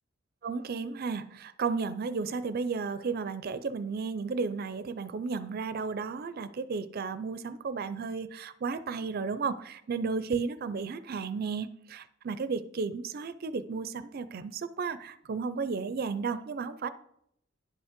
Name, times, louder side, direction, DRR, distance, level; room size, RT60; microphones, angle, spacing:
voice 1, 0.4-16.9, right 5 dB, 50° right, 13 dB, 0.4 m, -33 dB
10.5 x 5.2 x 5.1 m, 0.73 s
head